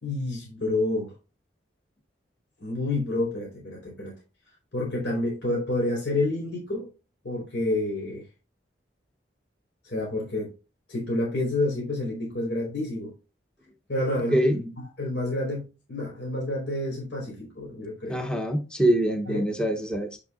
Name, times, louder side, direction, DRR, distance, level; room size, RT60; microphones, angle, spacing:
voice 1, 0.0-1.1 2.6-4.1 4.7-6.9 7.2-8.2 9.8-10.5 10.9-13.1 13.9-14.6 15.0-18.2 19.3-19.5, left 2 dB, 75° left, -2 dB, 4.3 m, -29 dB
voice 2, 18.1-20.2, right 1 dB, 5° left, 4 dB, 1.0 m, -24 dB
9.0 x 6.6 x 2.5 m, 0.30 s
head